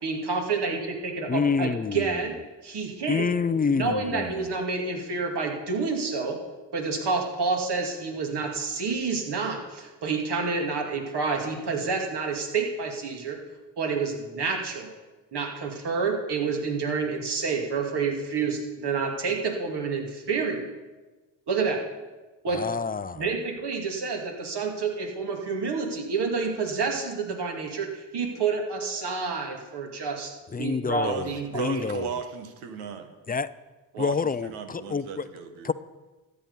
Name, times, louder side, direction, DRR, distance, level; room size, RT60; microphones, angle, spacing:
voice 1, 0.0-2.4 2.6-3.3 3.7-6.4 6.7-13.4 13.8-14.9 15.3-20.7 21.5-21.8 22.4-22.6 23.1-30.3 30.6-31.8, right 4 dB, 60° right, 2.6 m, -29 dB
voice 2, 1.3-2.1 3.1-4.4 22.5-23.3 30.5-32.1 33.3-33.5 34.0-35.3 35.6-35.7, left 5 dB, 20° left, 0.5 m, -27 dB
voice 3, 31.0-33.1 33.9-34.2 34.4-35.7, right 6 dB, 90° right, 1.3 m, -35 dB
13.0 x 9.0 x 5.6 m
supercardioid pair, 55°, 46 cm